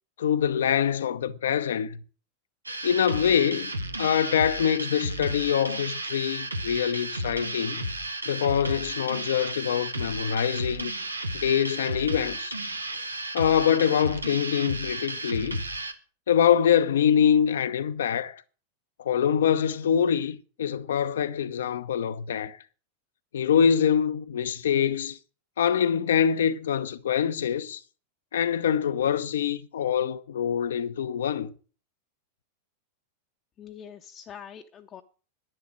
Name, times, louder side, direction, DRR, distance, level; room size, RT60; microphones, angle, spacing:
voice 1, 0.2-2.0 2.8-3.7 4.0-7.9 8.3-10.9 11.3-12.5 13.3-15.6 16.3-18.4 19.0-22.6 23.3-25.2 25.6-27.8 28.3-31.5, left 8 dB, 65° left, 0.8 m, -24 dB
sound 1, 2.7-15.9, right 1 dB, 80° right, 1.2 m, -33 dB
voice 2, 33.6-35.0, left 8 dB, 30° left, 0.9 m, -44 dB
11.0 x 11.0 x 6.3 m
figure-of-eight pair, 90°, 0 cm